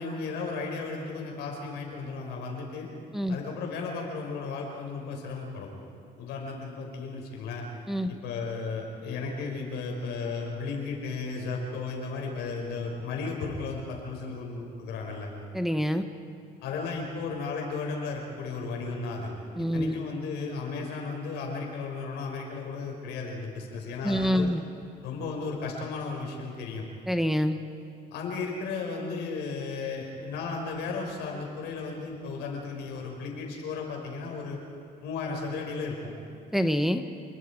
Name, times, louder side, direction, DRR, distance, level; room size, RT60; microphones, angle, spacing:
voice 1, 0.0-2.9 3.3-5.7 6.2-7.7 8.1-15.3 16.6-19.3 19.6-24.5 25.0-26.9 28.1-34.6 35.0-36.1, left 4 dB, 85° left, 1 dB, 5.2 m, -34 dB
voice 2, 15.5-16.1 19.6-20.0 24.0-24.6 27.1-27.6 36.5-37.1, equal, ahead, 7 dB, 0.9 m, -26 dB
28.5 x 21.0 x 4.9 m, 2.6 s
cardioid pair, 110°, 17 cm